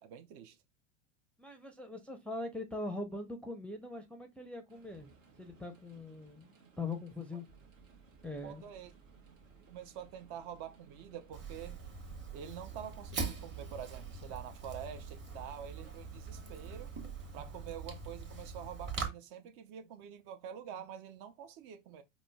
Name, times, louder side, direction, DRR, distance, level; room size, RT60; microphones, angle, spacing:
voice 1, 0.0-0.6 8.4-8.9 9.7-11.8 12.3-16.9 17.3-22.0, right 9 dB, 55° right, 0.6 m, -47 dB
voice 2, 1.4-5.1 5.4-7.5 8.2-8.7, left 2 dB, 5° left, 0.5 m, -42 dB
sound 1, 4.7-17.5, right 4 dB, 80° right, 1.1 m, -61 dB
Fire, 11.3-19.1, right 4 dB, 30° right, 1.2 m, -43 dB
4.9 x 2.0 x 2.2 m
hypercardioid pair, 85°, 38 cm